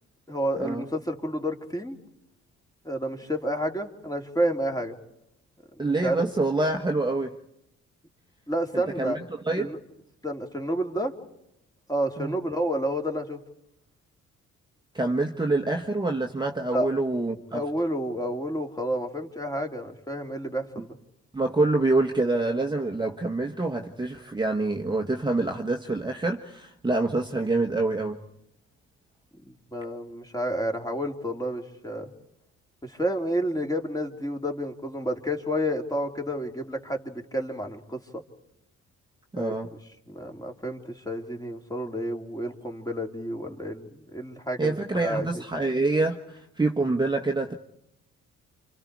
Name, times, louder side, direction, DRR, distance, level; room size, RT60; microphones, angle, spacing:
voice 1, 0.3-2.0 2.8-5.0 5.8-6.2 8.5-9.2 9.6-9.8 10.2-11.1 11.9-13.4 16.7-16.9 17.5-20.9 29.4-32.1 32.8-38.2 39.4-39.5 40.1-45.4, equal, 10° left, 3.3 m, -30 dB
voice 2, 5.8-7.3 9.0-9.7 12.2-12.4 14.9-17.6 21.3-28.2 39.3-39.7 44.6-47.6, right 2 dB, 15° right, 1.5 m, -26 dB
28.5 x 27.0 x 4.8 m
cardioid pair, 90°, 30 cm